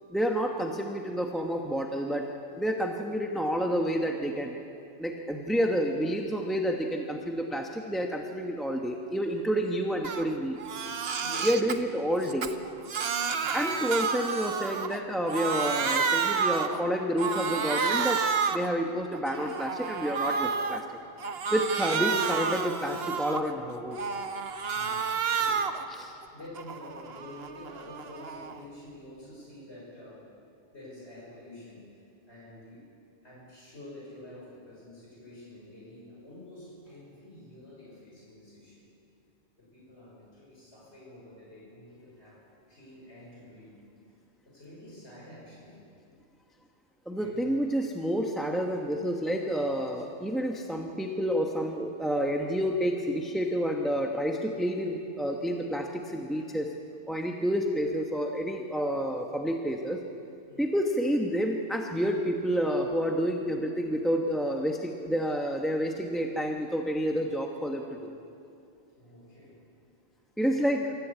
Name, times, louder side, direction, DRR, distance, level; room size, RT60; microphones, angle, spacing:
voice 1, 0.1-2.2 2.6-4.6 5.0-10.6 11.4-12.5 13.5-18.2 18.5-20.8 21.5-24.0 25.9-26.1 47.1-56.7 57.1-60.0 60.6-68.1 70.4-70.9, equal, ahead, 1 dB, 1.1 m, -29 dB
Crying sobbing, 10.0-10.3 10.6-11.8 12.2-15.0 15.3-16.8 17.2-18.7 19.1-20.8 21.2-23.5 23.9-25.9 26.2-28.6, right 5 dB, 65° right, 1.1 m, -30 dB
voice 2, 11.2-11.8 13.4-13.7 24.7-25.7 26.1-30.3 30.7-32.0 32.2-32.9 33.2-38.9 39.6-42.4 42.7-43.8 44.1-44.2 44.4-45.8 47.1-47.7 56.3-56.5 60.5-60.7 69.0-69.6 70.5-70.9, left 1 dB, 75° left, -6 dB, 6.0 m, -48 dB
25.0 x 14.0 x 8.3 m, 2.6 s
omnidirectional pair, 1.1 m